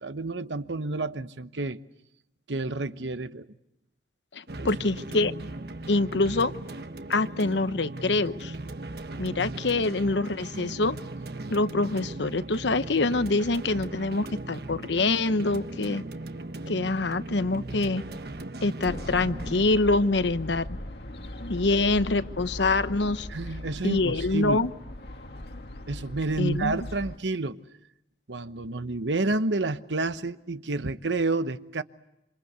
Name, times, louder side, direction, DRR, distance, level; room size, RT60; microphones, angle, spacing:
voice 1, 0.0-1.8 2.5-3.5 4.6-4.7 23.3-24.6 25.9-27.6 28.3-31.8, right 2 dB, 90° right, 1.0 m, -29 dB
voice 2, 4.3-5.3 5.9-6.5 7.1-8.5 9.2-11.0 11.5-16.0 16.7-18.0 18.6-20.7 21.4-23.3 23.8-24.7 26.4-26.8, left 3 dB, 85° left, 1.0 m, -25 dB
sound 1, 4.5-19.6, right 2 dB, 60° right, 1.3 m, -38 dB
sound 2, 18.8-27.2, left 1 dB, 65° left, 1.8 m, -39 dB
27.0 x 27.0 x 8.1 m
head